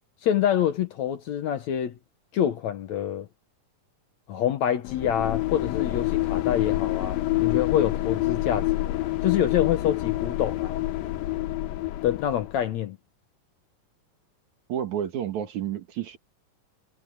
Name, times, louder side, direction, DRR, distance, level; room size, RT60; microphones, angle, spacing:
voice 1, 0.2-2.0 2.3-3.3 4.3-10.8 12.0-13.0, left 10 dB, 65° left, 2.1 m, -26 dB
sound 1, 4.8-12.6, left 16 dB, 90° left, 2.8 m, -27 dB
voice 2, 14.7-16.2, right 10 dB, 60° right, 2.8 m, -30 dB
omnidirectional pair, 4.0 m